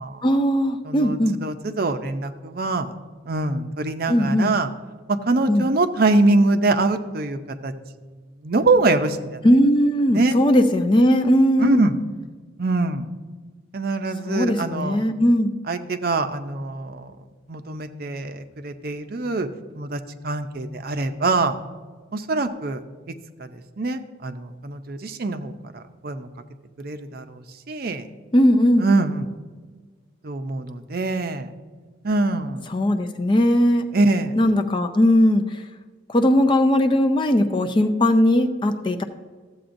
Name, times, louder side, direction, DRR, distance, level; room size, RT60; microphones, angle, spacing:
voice 1, 0.2-1.4 4.1-4.5 5.5-5.7 9.4-11.8 14.2-15.5 28.3-28.9 32.7-33.9 34.3-35.6 36.1-39.0, equal, 25° left, 7 dB, 0.4 m, -18 dB
voice 2, 0.9-2.9 3.3-4.7 5.1-7.7 8.4-9.4 10.1-10.4 11.6-11.9 12.6-13.1 13.7-15.0 15.7-17.1 17.5-19.5 19.7-21.6 22.1-22.8 23.4-23.5 23.8-26.3 26.8-28.1 28.8-29.3 30.2-31.5 32.0-32.6 33.9-34.3, right 2 dB, 50° right, 8 dB, 0.5 m, -23 dB
14.0 x 7.8 x 2.6 m, 1.4 s
head